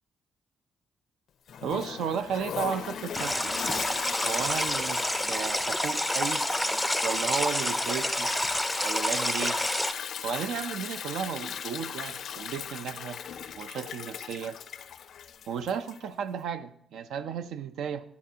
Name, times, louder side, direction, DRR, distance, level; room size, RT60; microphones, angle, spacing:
Toilet flush, 1.5-16.1, left 8 dB, 65° left, 0.4 m, -38 dB
voice 1, 1.6-6.5 7.0-8.3 8.8-9.6 10.2-13.2 13.6-14.6 15.5-18.1, right 7 dB, 80° right, 12 dB, 0.4 m, -34 dB
sound 1, 3.1-9.9, equal, ahead, 0.5 m, -28 dB
11.5 x 6.7 x 2.8 m, 0.70 s
cardioid pair, 90°, 0 cm